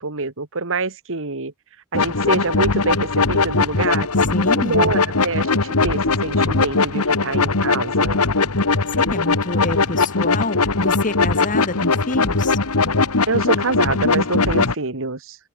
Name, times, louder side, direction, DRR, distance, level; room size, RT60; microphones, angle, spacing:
voice 1, 0.0-1.5 1.9-4.1 4.6-5.5 5.8-8.2 13.3-15.4, right 3 dB, 65° right, 2.2 m, -25 dB
sound 1, 1.9-14.7, left 3 dB, 80° left, 1.8 m, -20 dB
voice 2, 4.3-5.0 8.9-12.6, left 2 dB, 35° left, 1.7 m, -27 dB
head